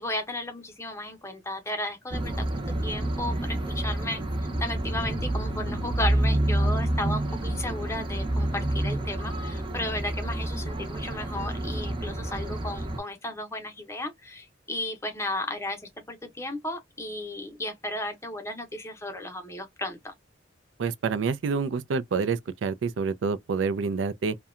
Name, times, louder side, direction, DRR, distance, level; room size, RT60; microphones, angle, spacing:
voice 1, 0.0-2.5 2.8-4.2 4.6-20.1, left 1 dB, 15° left, 0.6 m, -34 dB
sound 1, 2.1-13.0, right 1 dB, 25° right, 0.6 m, -28 dB
voice 2, 20.8-24.4, right 5 dB, 85° right, 0.4 m, -27 dB
2.7 x 2.2 x 2.3 m
head